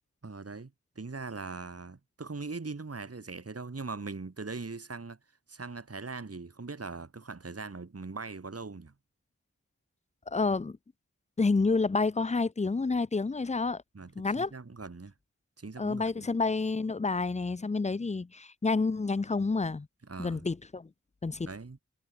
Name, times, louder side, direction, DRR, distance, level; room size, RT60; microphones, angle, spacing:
voice 1, 0.2-5.2 5.5-8.9 13.9-15.1 15.6-16.1 20.1-20.4 21.4-21.8, right 4 dB, 50° right, 1.4 m, -41 dB
voice 2, 10.3-10.8 11.4-13.8 14.2-14.5 15.8-19.9 20.2-20.9 21.2-21.5, left 3 dB, 25° left, 0.4 m, -29 dB
wide cardioid pair, 50°, 31 cm